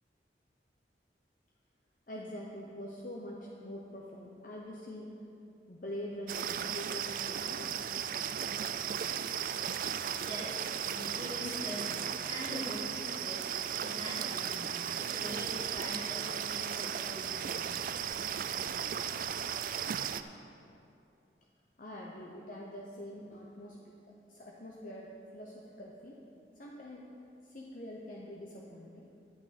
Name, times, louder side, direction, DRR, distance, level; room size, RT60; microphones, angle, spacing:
voice 1, 2.1-5.1 5.7-7.7 21.8-26.2 26.5-27.0 27.4-29.1, left 1 dB, 50° left, -2 dB, 0.8 m, -45 dB
sound 1, 6.3-20.2, right 8 dB, 50° right, 0.3 m, -36 dB
voice 2, 10.2-13.4 13.8-14.7 15.0-17.6, left 1 dB, 25° left, -5 dB, 2.1 m, -43 dB
11.0 x 9.5 x 4.2 m, 2.6 s
head